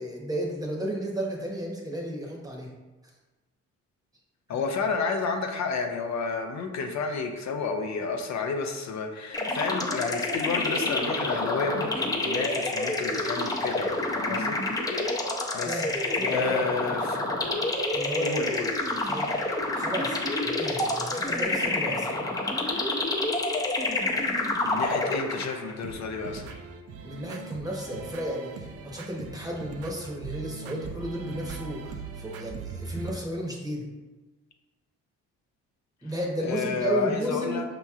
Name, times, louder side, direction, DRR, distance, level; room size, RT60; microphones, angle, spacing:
voice 1, 0.0-2.7 4.5-4.6 15.6-16.7 17.9-18.4 18.8-22.2 27.0-33.9 36.0-37.6, right 1 dB, 10° right, -1 dB, 0.9 m, -33 dB
voice 2, 4.5-14.6 15.5-17.2 18.2-18.7 24.6-26.6 36.4-37.6, left 5 dB, 65° left, 4 dB, 0.6 m, -31 dB
sound 1, 9.3-25.7, left 2 dB, 10° left, 0.5 m, -28 dB
sound 2, 25.8-33.1, right 5 dB, 55° right, 0.4 m, -40 dB
5.5 x 2.9 x 2.4 m, 1.2 s
cardioid pair, 90°, 30 cm